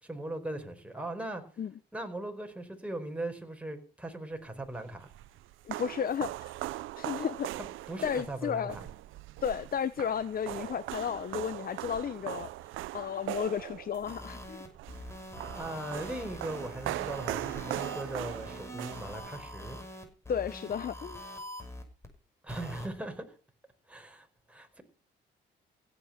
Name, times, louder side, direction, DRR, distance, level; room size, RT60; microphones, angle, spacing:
voice 1, 0.0-1.4 1.9-5.1 7.9-8.9 15.5-19.8 22.4-23.4 23.9-24.8, right 1 dB, 5° right, 4.7 m, -39 dB
sound 1, 4.7-19.7, right 16 dB, 85° right, 0.6 m, -40 dB
voice 2, 5.6-6.5 7.0-7.5 8.0-8.8 9.4-12.5 12.9-14.7 20.3-21.2, left 8 dB, 50° left, 0.9 m, -33 dB
sound 2, 14.0-22.1 22.5-22.9, equal, 15° left, 6.2 m, -44 dB
16.5 x 9.1 x 5.8 m
cardioid pair, 90°, 20 cm